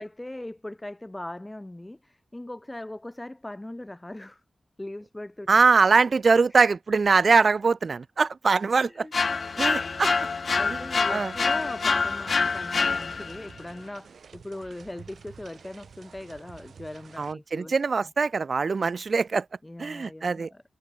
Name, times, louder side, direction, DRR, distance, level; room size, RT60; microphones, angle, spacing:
voice 1, 0.0-4.4 4.8-5.5 8.9-9.1 9.4-10.1 10.6-17.7 19.6-20.6, left 1 dB, 15° left, 2.1 m, -40 dB
voice 2, 5.5-9.1 9.6-10.1 10.7-10.8 11.1-11.3 17.2-19.5 19.8-20.5, right 4 dB, 60° right, 1.0 m, -22 dB
sound 1, 9.1-13.5, left 4 dB, 60° left, 0.5 m, -26 dB
sound 2, 11.3-17.3, right 6 dB, 85° right, 2.2 m, -50 dB
wide cardioid pair, 75°, 0 cm